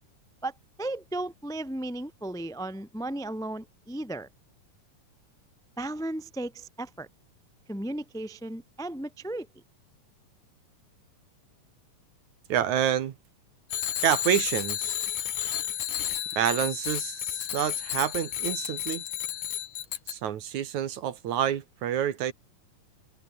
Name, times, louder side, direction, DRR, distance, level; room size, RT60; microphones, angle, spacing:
voice 1, 0.8-4.3 5.8-7.1 7.7-9.5, right 1 dB, 5° left, 0.7 m, -35 dB
voice 2, 12.5-13.1 14.0-14.9 16.4-19.0 20.1-22.3, right 10 dB, 65° right, 2.6 m, -28 dB
Bicycle bell, 13.7-20.1, left 11 dB, 65° left, 2.8 m, -32 dB
omnidirectional pair, 3.9 m